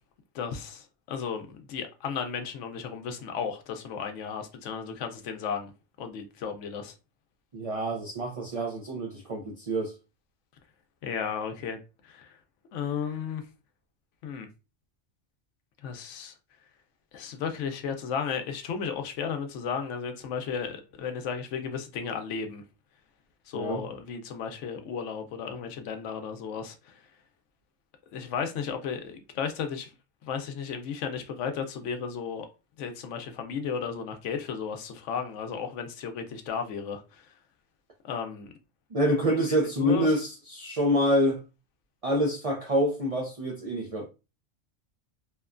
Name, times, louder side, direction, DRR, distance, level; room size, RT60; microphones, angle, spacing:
voice 1, 0.3-5.7 6.0-6.9 11.0-11.8 12.0-12.4 12.7-13.4 14.2-14.5 15.8-16.3 17.1-22.6 23.5-27.0 28.1-29.9 30.2-32.5 32.8-37.3 38.0-38.5 39.8-40.1, left 6 dB, 80° left, 0.9 m, -34 dB
voice 2, 7.5-9.9 23.5-23.8 38.9-41.4 42.0-44.1, equal, 60° right, 0.3 m, -27 dB
3.0 x 2.2 x 2.3 m
omnidirectional pair, 1.2 m